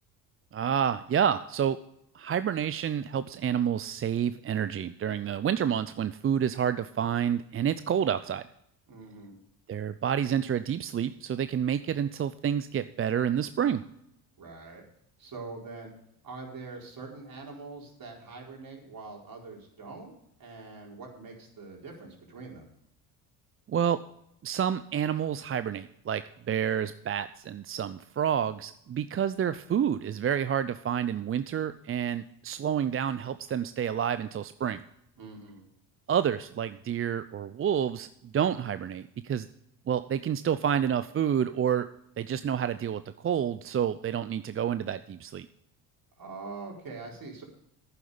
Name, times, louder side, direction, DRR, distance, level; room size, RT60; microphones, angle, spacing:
voice 1, 0.5-1.8 2.1-8.4 9.7-13.8 23.7-24.0 24.4-26.2 26.5-34.8 36.1-39.5 39.9-41.9 42.2-45.5, right 9 dB, 30° right, 13 dB, 0.5 m, -29 dB
voice 2, 8.9-9.3 14.4-14.9 15.2-15.9 16.2-20.1 20.4-22.7 35.2-35.7 46.2-47.4, right 3 dB, 45° right, -1 dB, 4.6 m, -43 dB
11.5 x 9.3 x 5.0 m, 0.76 s
hypercardioid pair, 65°, 48 cm